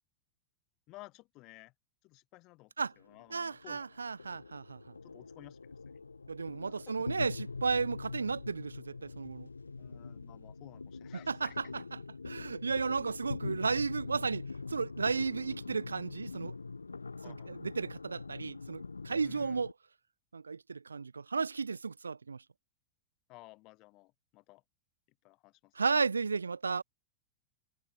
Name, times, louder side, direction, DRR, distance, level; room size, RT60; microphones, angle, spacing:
voice 1, 0.9-1.7 2.0-3.9 5.0-6.0 6.6-7.1 9.8-11.7 17.2-17.5 19.2-19.6 23.3-24.6 25.2-25.7, left 22 dB, 40° left, 1.3 m, -55 dB
sound 1, 2.9-19.7, left 4 dB, 80° left, 0.8 m, -44 dB
voice 2, 3.3-4.8 6.3-9.5 11.3-12.0 12.2-16.5 17.3-19.7 20.3-22.4 25.7-26.8, right 5 dB, 75° right, 0.4 m, -34 dB
figure-of-eight pair, 90°, 0 cm